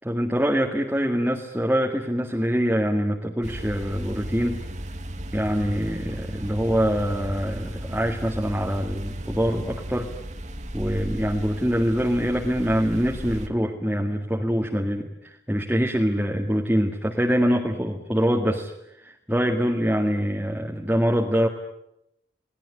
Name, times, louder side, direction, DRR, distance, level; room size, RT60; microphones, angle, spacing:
voice 1, 0.0-4.6 5.3-10.1 10.7-18.7 19.0-21.5, equal, 10° right, 1 dB, 2.0 m, -24 dB
sound 1, 3.4-13.5, right 1 dB, 40° right, 2.1 m, -35 dB
29.5 x 20.0 x 9.9 m, 0.81 s
head